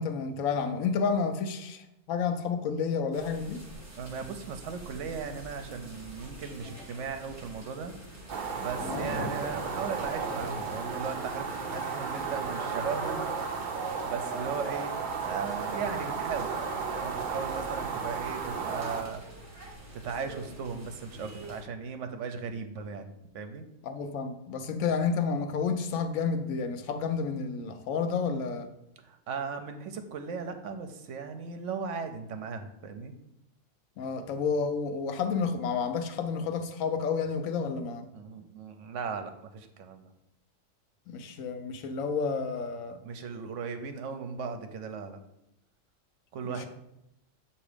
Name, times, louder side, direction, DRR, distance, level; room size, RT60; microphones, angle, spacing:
voice 1, 0.0-3.6 8.8-9.1 23.8-28.7 34.0-38.1 41.1-43.0 46.4-46.7, left 5 dB, 90° left, 8 dB, 1.0 m, -30 dB
sound 1, 3.1-21.6, right 1 dB, 25° right, 1.8 m, -45 dB
voice 2, 4.0-7.9 8.6-13.3 14.0-16.5 17.0-19.2 19.9-23.7 29.0-33.1 38.1-40.1 43.0-45.2 46.3-46.7, right 5 dB, 70° right, 7 dB, 1.0 m, -37 dB
sound 2, 8.3-19.0, right 5 dB, 50° right, 0.6 m, -34 dB
7.1 x 2.9 x 4.9 m, 0.84 s
omnidirectional pair, 1.4 m